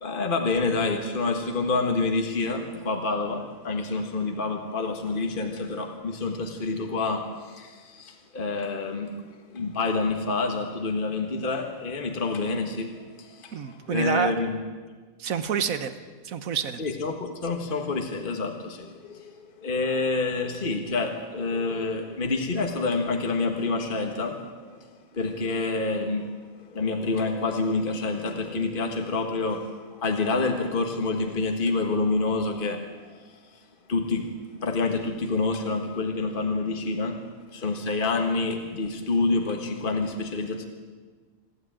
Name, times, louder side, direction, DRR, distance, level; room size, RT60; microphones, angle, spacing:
voice 1, 0.0-9.2 9.5-14.6 16.8-19.3 19.6-24.8 25.1-33.4 33.9-34.3 34.6-37.3 37.5-40.6, left 3 dB, 40° left, 4 dB, 1.8 m, -28 dB
voice 2, 13.5-14.3 15.2-15.9 16.2-16.8, right 8 dB, 90° right, 11 dB, 1.6 m, -28 dB
26.0 x 12.5 x 9.1 m, 1.5 s
omnidirectional pair, 1.4 m